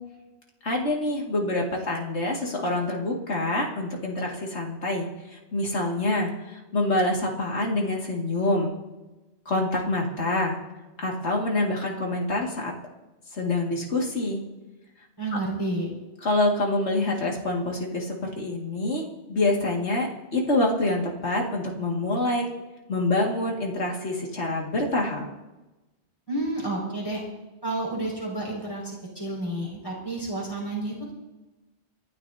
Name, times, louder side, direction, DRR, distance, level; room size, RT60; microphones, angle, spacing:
voice 1, 0.6-8.7 9.5-10.6 11.0-12.7 13.3-14.4 16.2-22.5 22.9-25.3, left 2 dB, 85° left, -1 dB, 2.5 m, -26 dB
voice 2, 15.2-15.9 26.3-27.2 27.6-31.1, right 2 dB, 20° left, -4 dB, 5.6 m, -30 dB
29.0 x 11.5 x 2.8 m, 1.1 s
omnidirectional pair, 1.1 m